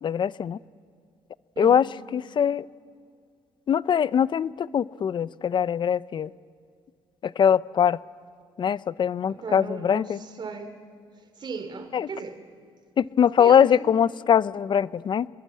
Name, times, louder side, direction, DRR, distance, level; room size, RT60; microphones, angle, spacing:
voice 1, 0.0-0.6 1.6-1.9 2.1-2.7 3.7-6.3 7.2-8.0 8.6-10.2 11.9-12.1 13.0-15.3, left 8 dB, 50° left, 0.6 m, -22 dB
voice 2, 1.6-1.9 9.3-10.7 11.3-12.4 13.4-13.9, right 4 dB, 50° right, 2.9 m, -37 dB
26.5 x 22.5 x 8.6 m
cardioid pair, 95°, 10 cm